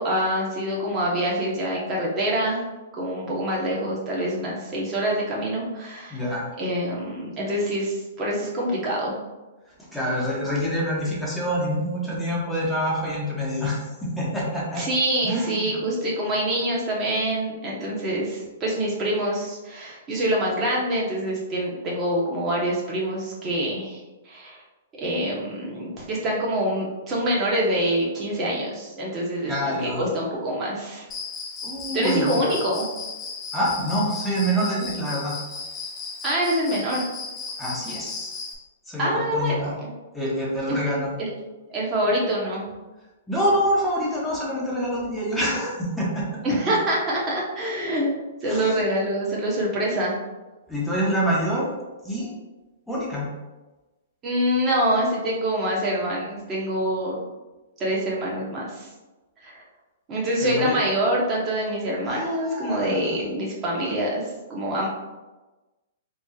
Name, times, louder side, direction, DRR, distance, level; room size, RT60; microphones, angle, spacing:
voice 1, 0.0-2.6 3.0-6.2 6.6-9.2 14.8-24.0 24.2-24.6 25.0-31.1 31.9-32.9 36.2-37.0 39.0-39.9 40.7-40.9 41.2-41.3 41.7-42.7 46.4-48.1 48.4-50.2 54.2-57.2 57.8-58.9 59.4-59.5 60.1-64.2 64.5-64.9, right 1 dB, 25° right, -4 dB, 1.1 m, -25 dB
voice 2, 6.1-6.5 9.9-14.8 15.2-15.8 29.5-30.1 31.6-32.6 33.5-35.4 37.6-38.5 38.9-39.7 40.1-41.2 43.3-46.3 48.4-48.8 50.7-51.7 52.0-52.3 52.9-53.3 60.4-60.8 62.1-63.2, equal, 5° left, -6 dB, 1.2 m, -26 dB
Cricket, 31.1-38.6, left 4 dB, 20° left, 0.6 m, -35 dB
4.1 x 3.1 x 2.4 m, 1.1 s
hypercardioid pair, 135°, 0 cm